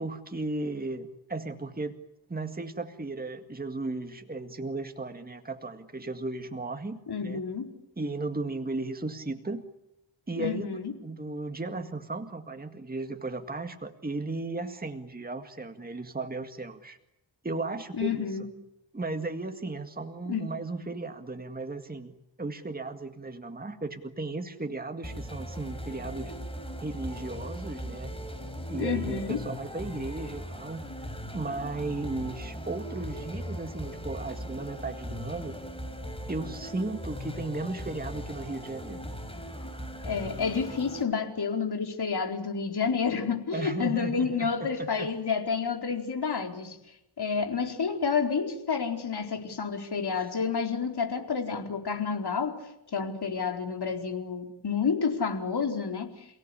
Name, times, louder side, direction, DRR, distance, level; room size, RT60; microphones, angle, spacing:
voice 1, 0.0-2.0 2.3-7.4 8.0-9.6 10.3-10.7 11.0-17.0 17.4-18.5 18.9-26.3 26.8-28.1 28.7-30.8 31.3-35.6 36.3-39.1 43.5-45.1, right 2 dB, 20° right, 6 dB, 2.0 m, -35 dB
voice 2, 7.1-7.7 10.4-10.9 18.0-18.5 20.3-20.4 28.8-29.4 40.0-46.8 47.2-52.6 52.9-56.3, left 5 dB, 60° left, 3 dB, 4.5 m, -29 dB
sound 1, 25.0-41.0, equal, 10° left, 4.9 m, -39 dB
29.5 x 18.0 x 10.0 m, 0.88 s
cardioid pair, 75°, 45 cm